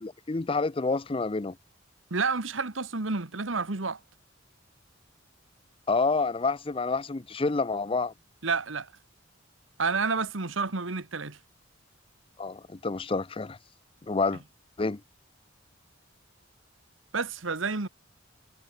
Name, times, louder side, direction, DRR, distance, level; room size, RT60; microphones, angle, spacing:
voice 1, 0.0-1.6 5.9-8.1 12.4-13.6 14.1-14.4 14.8-15.0, left 3 dB, 30° left, 0.5 m, -28 dB
voice 2, 2.1-4.0 8.4-8.9 9.8-11.4 17.1-17.9, right 4 dB, 80° right, 1.6 m, -29 dB
head